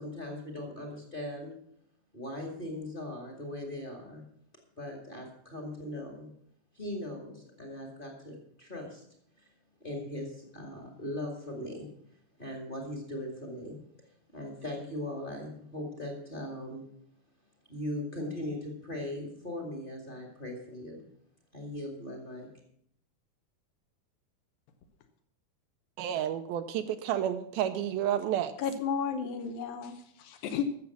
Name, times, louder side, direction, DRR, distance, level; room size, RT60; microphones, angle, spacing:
voice 1, 0.0-1.6 2.1-4.2 4.8-6.3 6.7-9.0 9.4-9.5 9.8-11.9 12.4-13.8 14.3-16.9 17.7-21.0 21.5-22.5, left 1 dB, 20° left, 1.3 m, -39 dB
voice 2, 26.0-28.5, right 10 dB, 80° right, 2.4 m, -30 dB
voice 3, 28.6-30.6, left 7 dB, 75° left, 2.4 m, -33 dB
13.5 x 7.3 x 7.1 m
omnidirectional pair, 4.6 m